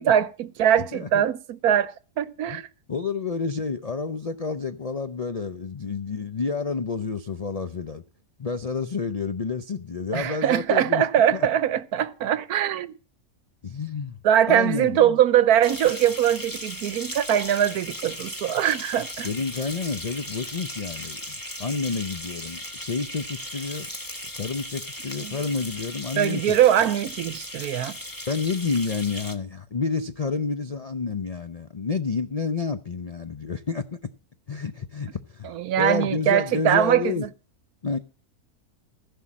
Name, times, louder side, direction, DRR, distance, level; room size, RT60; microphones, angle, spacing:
voice 1, 0.0-2.7 10.1-12.9 14.2-19.3 25.2-25.4 26.1-28.0 35.4-37.3, right 10 dB, 75° right, 1.2 m, -22 dB
voice 2, 0.9-1.2 2.5-2.6 2.9-8.0 8.4-11.5 13.6-14.2 14.5-15.2 19.2-23.9 24.3-26.6 28.3-34.0 34.5-35.5 35.8-37.2 37.8-38.0, left 4 dB, 60° left, 0.3 m, -29 dB
sound 1, 15.6-29.3, left 1 dB, 15° left, 1.0 m, -37 dB
15.0 x 5.6 x 7.3 m
omnidirectional pair, 1.6 m